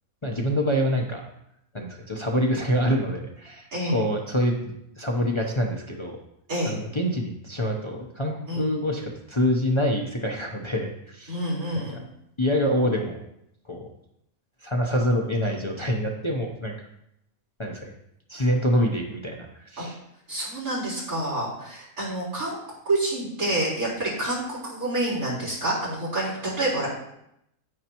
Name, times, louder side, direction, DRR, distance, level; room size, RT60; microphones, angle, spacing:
voice 1, 0.2-1.2 1.7-6.2 6.6-11.4 11.7-12.0 12.4-13.2 13.7-13.9 14.6-16.7 17.6-17.9 18.3-20.0, equal, 25° left, 0 dB, 0.8 m, -26 dB
voice 2, 11.3-11.9 19.8-19.9 20.3-22.6 22.9-26.9, right 1 dB, 90° right, -8 dB, 4.7 m, -28 dB
9.6 x 9.3 x 3.0 m, 0.79 s
omnidirectional pair, 1.5 m